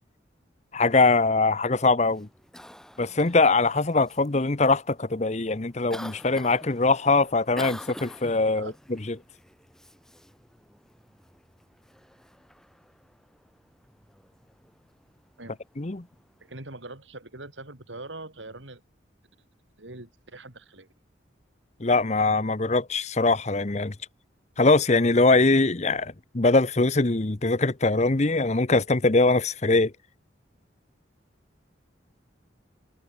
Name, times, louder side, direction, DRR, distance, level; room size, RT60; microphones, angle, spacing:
voice 1, 0.7-2.3 3.0-8.7 9.1-9.2 15.8-16.0 21.8-23.9 24.6-29.9, left 3 dB, 35° left, 0.9 m, -22 dB
Cough, 2.1-16.5, equal, 5° left, 5.1 m, -47 dB
voice 2, 16.4-18.8 19.8-20.9, right 2 dB, 80° right, 3.9 m, -42 dB
head